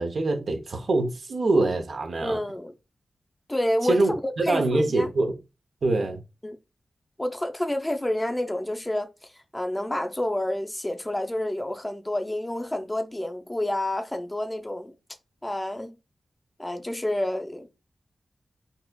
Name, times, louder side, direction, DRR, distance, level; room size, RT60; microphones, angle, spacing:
voice 1, 0.0-2.4 3.8-4.1 4.4-5.3 5.8-6.2, right 2 dB, 70° right, 0.7 m, -24 dB
voice 2, 2.2-2.7 3.5-4.0 4.2-5.1 6.4-6.6 7.2-14.9 15.4-16.0 16.6-17.7, left 1 dB, 15° left, 0.5 m, -29 dB
4.0 x 2.4 x 2.3 m
cardioid pair, 55°, 0 cm